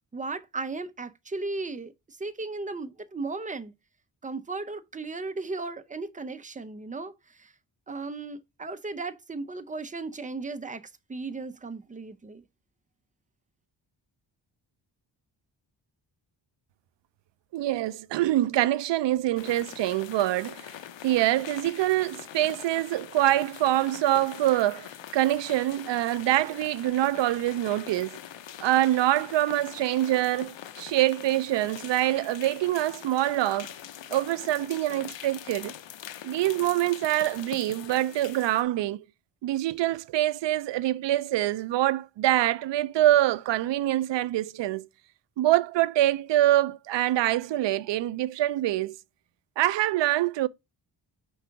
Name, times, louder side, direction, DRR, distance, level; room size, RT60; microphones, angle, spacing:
voice 1, 0.1-3.7 4.2-7.5 7.9-10.8 11.1-12.4, right 3 dB, 20° right, 0.6 m, -36 dB
voice 2, 17.5-20.7 21.0-28.2 28.6-33.7 34.1-35.7 36.2-39.0 39.4-44.9 45.4-49.0 49.6-50.5, right 14 dB, 75° right, 0.5 m, -25 dB
sound 1, 19.4-38.6, left 10 dB, 85° left, 0.8 m, -43 dB
5.0 x 4.7 x 4.5 m
wide cardioid pair, 125°, 43 cm